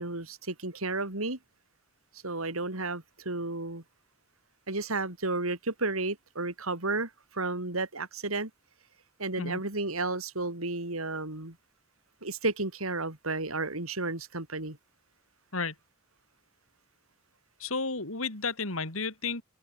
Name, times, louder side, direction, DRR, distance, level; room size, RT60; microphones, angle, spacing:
voice 1, 0.0-1.4 2.2-3.8 4.7-8.5 9.2-11.6 12.2-14.8, right 3 dB, 85° right, 4.2 m, -32 dB
voice 2, 17.6-19.4, left 4 dB, 80° left, 4.7 m, -32 dB
open air
head